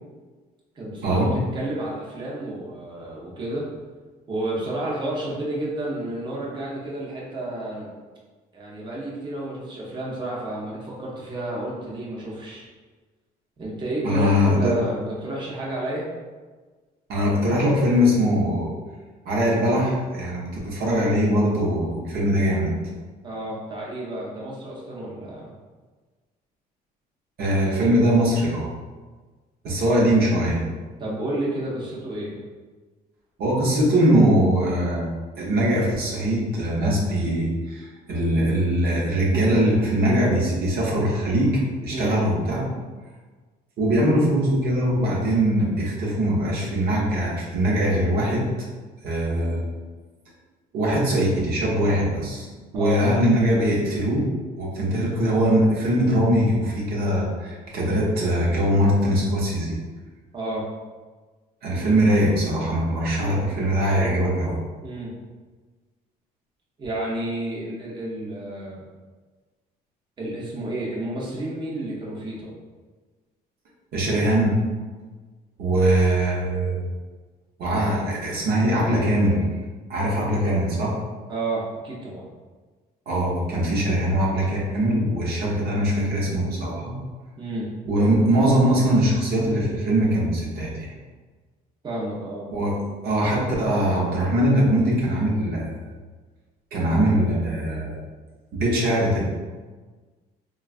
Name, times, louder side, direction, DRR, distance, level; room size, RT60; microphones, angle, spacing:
voice 1, 0.8-3.6 4.3-7.9 8.5-12.6 13.6-16.1 23.2-25.5 31.0-32.4 41.9-42.2 52.7-53.0 60.3-60.7 64.8-65.1 66.8-68.8 70.2-72.5 81.3-82.3 87.4-87.7 91.8-92.5, right 1 dB, 25° right, -5 dB, 0.7 m, -31 dB
voice 2, 14.0-14.7 17.1-18.7 19.3-22.7 27.4-28.7 29.6-30.6 33.4-35.1 35.4-42.7 43.8-48.5 49.0-49.7 50.7-52.5 52.7-54.3 54.6-59.8 61.6-64.6 73.9-74.6 75.6-76.8 77.6-79.4 79.9-81.0 83.1-86.9 87.9-90.9 92.5-92.8 93.0-95.7 96.7-98.0 98.5-99.2, equal, 65° right, -4 dB, 0.8 m, -21 dB
3.2 x 2.3 x 2.4 m, 1.4 s
cardioid pair, 110°, 17 cm